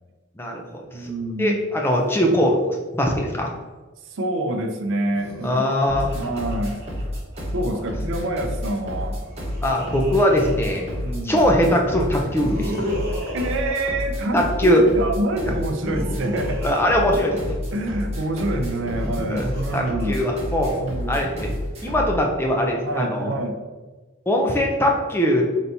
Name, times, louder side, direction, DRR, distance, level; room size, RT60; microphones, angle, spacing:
voice 1, 0.4-1.1 1.4-3.5 5.4-6.1 9.6-10.9 11.2-12.9 14.3-14.8 16.6-17.6 19.3-19.5 19.7-20.8 21.1-21.5 21.8-23.3 24.3-25.4, equal, 10° left, 0 dB, 0.4 m, -21 dB
voice 2, 0.9-1.6 4.1-5.7 6.1-6.8 7.5-9.2 11.0-11.4 13.3-16.7 17.7-20.2 20.7-21.2 22.8-23.5, right 1 dB, 60° right, 4 dB, 0.5 m, -26 dB
Laughter, 5.1-7.6 8.9-11.3 12.2-14.7 15.5-17.9 18.8-20.7, equal, 45° right, 1.1 m, -34 dB
sound 1, 5.9-22.2, equal, 30° right, 1.1 m, -30 dB
4.0 x 3.4 x 2.7 m, 1.3 s
head